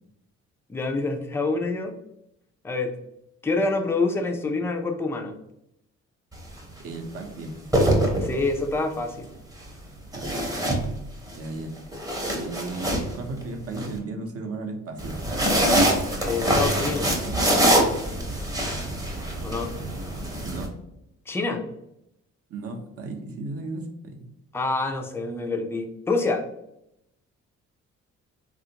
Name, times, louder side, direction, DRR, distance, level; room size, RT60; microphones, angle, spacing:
voice 1, 0.7-2.0 2.6-2.9 3.4-5.3 8.2-9.3 16.2-17.1 19.4-19.7 21.3-21.6 24.5-26.5, left 3 dB, 10° left, 4 dB, 0.4 m, -26 dB
sound 1, 6.3-6.6 7.5-8.7 10.1-11.4 11.8-13.9 15.0-20.7, right 1 dB, 10° right, 0.7 m, -24 dB
voice 2, 6.8-7.6 10.1-10.4 11.4-11.7 12.4-15.2 20.4-20.7 22.5-24.3, right 3 dB, 50° right, 4 dB, 0.7 m, -35 dB
3.3 x 2.4 x 2.8 m, 0.81 s
cardioid pair, 90°, 30 cm